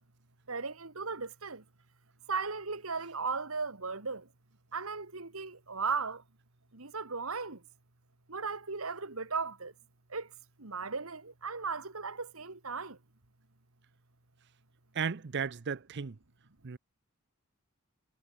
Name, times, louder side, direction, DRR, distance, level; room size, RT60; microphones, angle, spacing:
voice 1, 0.5-1.6 2.3-4.3 4.7-6.2 6.7-7.6 8.3-9.7 10.1-13.0, right 4 dB, 80° right, 2.2 m, -36 dB
voice 2, 14.9-16.2 16.6-16.8, right 6 dB, 55° right, 0.6 m, -34 dB
head